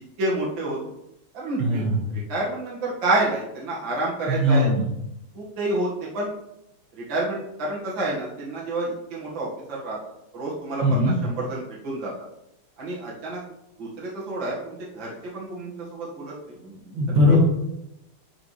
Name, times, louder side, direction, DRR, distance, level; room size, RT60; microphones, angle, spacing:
voice 1, 0.2-0.8 1.3-1.8 2.3-4.7 5.3-6.3 7.0-10.0 10.3-12.1 12.8-13.4 13.8-16.3 17.3-17.4, right 2 dB, 60° right, -5 dB, 2.4 m, -29 dB
voice 2, 1.6-2.0 4.3-4.9 10.8-11.2 16.6-17.4, equal, 75° right, -4 dB, 2.6 m, -21 dB
11.0 x 4.9 x 3.2 m, 0.85 s
omnidirectional pair, 2.4 m